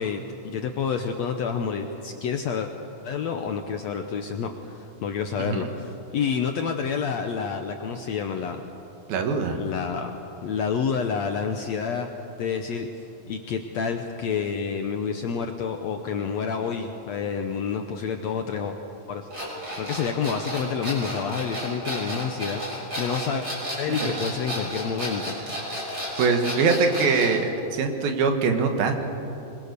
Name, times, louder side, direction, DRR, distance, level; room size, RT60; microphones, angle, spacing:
voice 1, 0.0-2.7 3.0-8.6 9.5-10.1 10.4-12.1 12.4-18.8 19.1-19.3 19.7-23.5 23.8-25.4, left 6 dB, 70° left, 5 dB, 1.6 m, -29 dB
voice 2, 5.4-5.7 9.1-9.6 23.9-24.1 26.2-29.0, right 4 dB, 80° right, 5 dB, 3.5 m, -23 dB
sound 1, 19.3-27.4, equal, 25° right, 6.5 m, -32 dB
25.0 x 22.5 x 6.8 m, 2.9 s
omnidirectional pair, 4.2 m